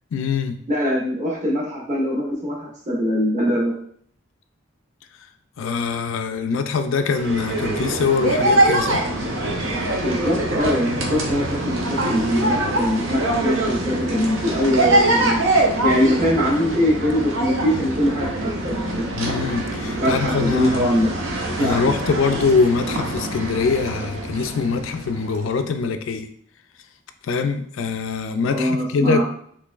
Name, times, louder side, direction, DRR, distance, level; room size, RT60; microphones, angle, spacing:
voice 1, 0.1-0.6 5.6-9.0 19.1-20.9 21.6-26.3 27.3-29.2, left 5 dB, 75° left, 9 dB, 0.3 m, -23 dB
voice 2, 0.7-3.7 10.0-15.4 15.8-19.1 20.0-21.1 21.6-21.9 28.5-29.2, equal, 35° right, -4 dB, 1.1 m, -22 dB
sound 1, 7.1-25.5, right 1 dB, 75° right, 0.7 m, -24 dB
3.9 x 3.1 x 2.4 m, 0.63 s
head